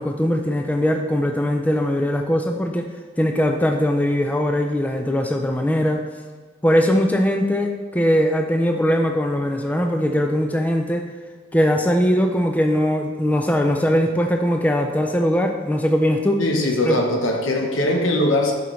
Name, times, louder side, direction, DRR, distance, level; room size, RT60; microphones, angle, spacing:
voice 1, 0.0-2.9 3.2-6.0 6.6-11.1 11.5-16.4 16.8-17.0, equal, 10° left, 4 dB, 0.3 m, -20 dB
voice 2, 16.4-18.5, left 1 dB, 85° left, 2 dB, 0.9 m, -20 dB
7.8 x 5.7 x 3.1 m, 1.4 s
head